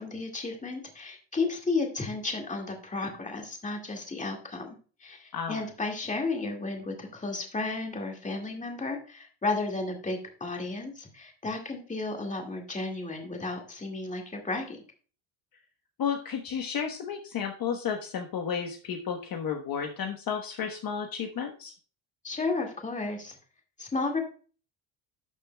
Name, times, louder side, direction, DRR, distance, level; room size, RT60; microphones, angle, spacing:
voice 1, 0.0-14.8 22.2-23.4 23.8-24.2, left 3 dB, 15° left, 2 dB, 2.0 m, -33 dB
voice 2, 16.0-21.7, left 7 dB, 45° left, 4 dB, 1.1 m, -32 dB
12.0 x 6.7 x 2.2 m, 0.39 s
cardioid pair, 145°, 49 cm